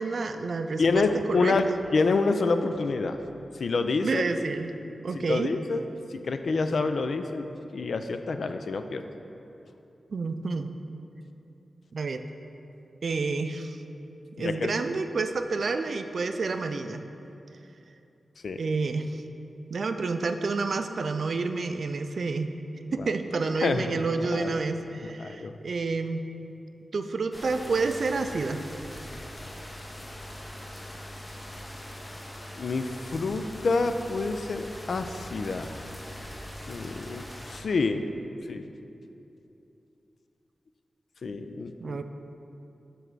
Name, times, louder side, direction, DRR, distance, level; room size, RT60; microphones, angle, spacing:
voice 1, 0.0-1.8 4.0-4.7 5.0-5.5 10.1-10.7 11.9-12.2 13.0-13.8 14.4-17.0 18.6-19.2 19.7-22.5 22.9-26.3 26.9-28.6 41.8-42.0, right 4 dB, 65° right, 8 dB, 0.3 m, -29 dB
voice 2, 0.8-3.2 3.6-4.2 5.1-5.8 6.1-7.4 7.7-9.0 14.4-14.7 18.4-18.6 23.0-23.1 23.6-24.6 25.0-25.6 32.6-35.8 36.7-38.1 38.5-38.7 41.2-42.0, left 3 dB, 70° left, 8 dB, 0.3 m, -28 dB
sound 1, 27.3-37.6, left 1 dB, 25° left, 0.7 m, -42 dB
7.2 x 3.3 x 6.0 m, 2.8 s
wide cardioid pair, 80°, 0 cm